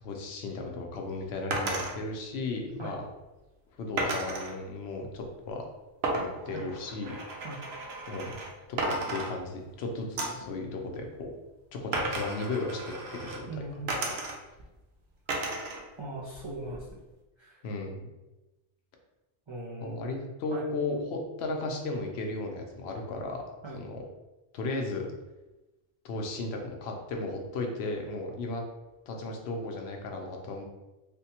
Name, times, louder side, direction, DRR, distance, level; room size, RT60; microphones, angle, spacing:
voice 1, 0.0-3.1 3.8-5.7 6.1-7.1 8.1-8.3 8.8-11.3 11.7-13.5 17.6-18.1 19.8-23.4 23.7-24.0 24.5-25.1 26.0-28.6 29.1-30.6, left 2 dB, 70° left, 2 dB, 0.8 m, -35 dB
sound 1, 1.5-1.9 4.0-4.5 6.0-8.5 8.8-9.7 10.2-10.5 11.9-13.4 13.9-14.6 15.3-15.8 16.2-17.0, right 2 dB, 70° right, 0.8 m, -33 dB
voice 2, 13.5-13.9 16.0-17.0 17.4-17.6 19.5-20.2 20.5-20.6 23.6-23.8, right 2 dB, 40° right, -7 dB, 0.4 m, -40 dB
3.4 x 2.2 x 2.8 m, 1.1 s
omnidirectional pair, 1.1 m